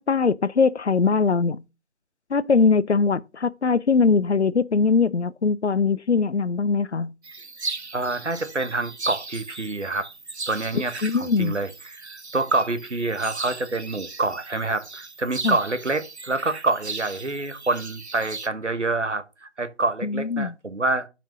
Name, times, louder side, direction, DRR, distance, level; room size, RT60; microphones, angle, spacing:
voice 1, 0.0-1.6 2.3-7.1 11.0-11.6 15.4-15.6 20.0-20.5, left 4 dB, 70° left, 0.6 m, -21 dB
sound 1, 7.2-18.5, right 3 dB, 65° right, 1.0 m, -37 dB
voice 2, 7.9-10.1 10.5-21.1, right 3 dB, 85° right, 1.3 m, -27 dB
6.2 x 5.1 x 6.8 m
figure-of-eight pair, 170°, 35 cm